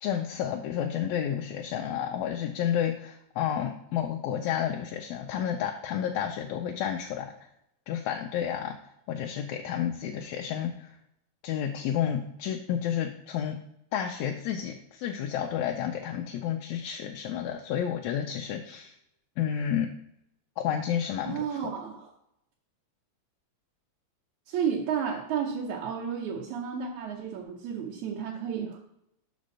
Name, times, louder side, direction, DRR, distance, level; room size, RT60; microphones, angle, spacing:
voice 1, 0.0-7.3 7.9-8.8 9.1-11.0 11.4-13.6 13.9-19.0 19.4-19.9 20.6-21.5, left 9 dB, 80° left, 2 dB, 1.9 m, -31 dB
voice 2, 21.2-22.1 24.5-28.9, right 7 dB, 80° right, -1 dB, 2.2 m, -32 dB
5.3 x 5.1 x 6.4 m, 0.79 s
omnidirectional pair, 3.3 m